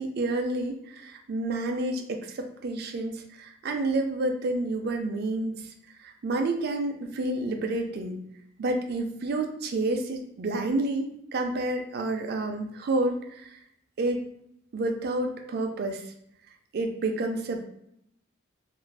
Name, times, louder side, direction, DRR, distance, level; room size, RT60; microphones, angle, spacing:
voice 1, 0.0-5.5 6.0-8.2 8.6-13.6 14.0-14.2 14.7-16.0 16.7-17.6, right 2 dB, 55° right, 5 dB, 0.4 m, -29 dB
2.5 x 2.3 x 3.2 m, 0.74 s
head